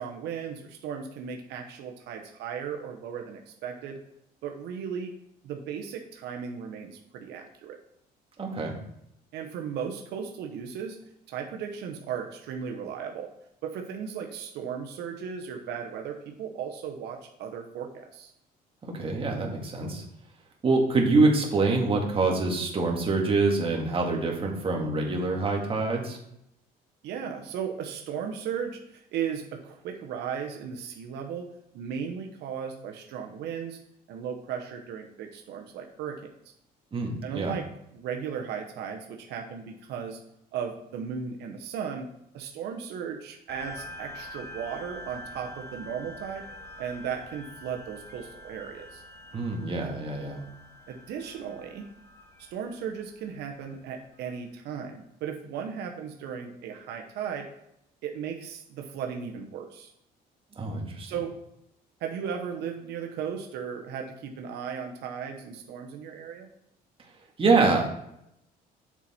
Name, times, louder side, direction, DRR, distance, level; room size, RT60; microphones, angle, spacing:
voice 1, 0.0-4.0 4.4-5.1 5.4-7.8 9.3-11.0 11.3-13.3 13.6-18.3 27.0-31.5 31.7-33.8 34.1-36.3 37.2-37.7 37.9-40.2 40.5-42.1 42.3-46.5 46.8-49.0 50.9-51.9 52.4-57.5 58.0-59.9 61.0-61.3 62.0-66.5, right 7 dB, 80° right, 3 dB, 1.0 m, -36 dB
voice 2, 8.4-8.7 18.9-20.0 20.6-26.2 36.9-37.6 49.3-50.4 60.6-61.1 67.4-67.9, right 3 dB, 30° right, 0 dB, 1.9 m, -25 dB
sound 1, 43.5-54.4, left 1 dB, 15° left, 1.9 m, -46 dB
7.2 x 5.7 x 4.3 m, 0.79 s
cardioid pair, 110°, 17 cm